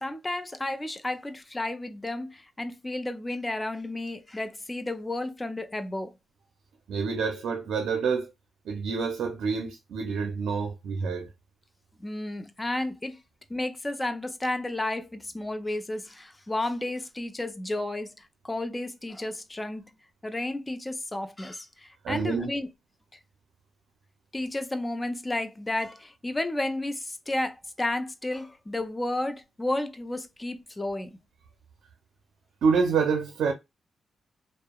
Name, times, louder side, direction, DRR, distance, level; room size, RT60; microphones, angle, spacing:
voice 1, 0.0-6.1 12.0-13.2 13.5-19.9 20.2-22.7 24.3-31.2, left 1 dB, 20° left, 0.5 m, -32 dB
voice 2, 6.9-8.3 8.7-11.3 22.0-22.5 32.6-33.5, right 5 dB, 85° right, 0.4 m, -27 dB
2.8 x 2.0 x 2.2 m
cardioid pair, 65°, 0 cm